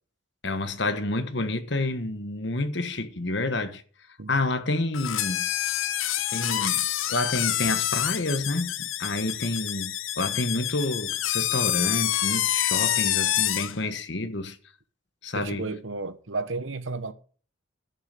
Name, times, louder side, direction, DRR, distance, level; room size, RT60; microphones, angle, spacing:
voice 1, 0.4-3.8 4.3-5.5 6.3-14.6 15.2-15.7, left 2 dB, 55° left, 1.3 m, -29 dB
sound 1, 4.9-13.8, left 13 dB, 75° left, 0.7 m, -27 dB
voice 2, 15.3-17.1, right 3 dB, 70° right, 1.1 m, -32 dB
11.0 x 6.4 x 6.8 m
head